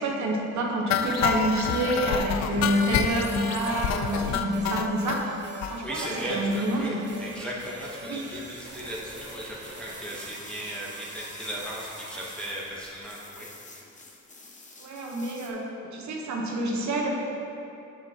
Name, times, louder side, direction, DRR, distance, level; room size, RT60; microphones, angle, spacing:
voice 1, 0.0-5.4 5.7-7.0 8.0-8.2 14.8-15.6 15.9-17.1, right 1 dB, 70° right, -1 dB, 1.2 m, -28 dB
sound 1, 0.9-5.2 5.6-5.7 6.1-6.2 6.4-6.5 6.8-6.9, left 7 dB, 65° left, 0.5 m, -28 dB
sound 2, 2.5-13.0, right 1 dB, 35° right, 1.2 m, -44 dB
voice 2, 5.8-13.5, equal, 5° left, -6 dB, 1.1 m, -36 dB
sound 3, 7.9-15.5, left 3 dB, 25° left, 0.9 m, -49 dB
7.6 x 7.2 x 2.9 m, 2.8 s
cardioid pair, 90°, 30 cm